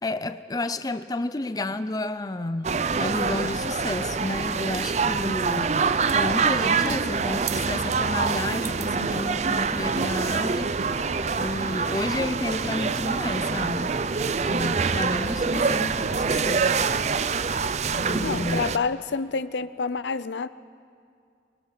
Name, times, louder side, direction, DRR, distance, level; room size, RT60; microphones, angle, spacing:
voice 1, 0.0-5.8 6.1-10.9 11.4-14.0 14.5-16.9 18.0-18.6, left 2 dB, 20° left, 12 dB, 0.5 m, -31 dB
sound 1, 2.6-18.8, right 5 dB, 40° right, 0.5 m, -25 dB
voice 2, 18.2-20.5, left 4 dB, 80° left, 15 dB, 0.6 m, -28 dB
24.0 x 23.0 x 5.9 m, 2.3 s
head